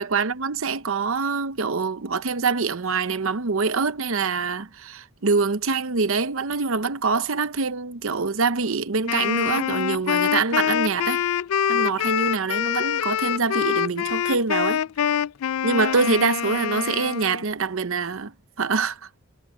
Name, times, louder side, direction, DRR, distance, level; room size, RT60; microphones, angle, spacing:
voice 1, 0.0-11.2 11.7-14.8 15.6-19.0, right 4 dB, 65° right, 0.8 m, -25 dB
Wind instrument woodwind instrument, 9.1-17.5, left 9 dB, 75° left, 0.3 m, -25 dB
head